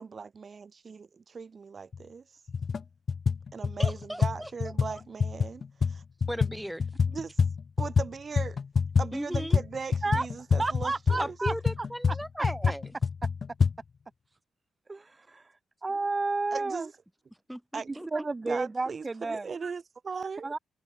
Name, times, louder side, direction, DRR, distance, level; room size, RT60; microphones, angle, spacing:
voice 1, 0.0-2.3 3.5-6.0 7.1-7.4 7.8-8.6 9.0-11.4 16.5-16.9 17.7-20.5, right 5 dB, 40° right, 3.2 m, -39 dB
sound 1, 1.9-2.0 2.5-2.8 3.1-8.1 8.4-13.7, left 5 dB, 40° left, 2.7 m, -27 dB
voice 2, 3.8-4.5 6.3-6.8 9.1-9.6 11.2-12.8 17.5-18.1, equal, ahead, 2.1 m, -36 dB
voice 3, 10.6-11.5 14.9-16.9 18.1-19.5 20.4-20.6, right 3 dB, 25° right, 2.1 m, -31 dB
cardioid pair, 90°, 0 cm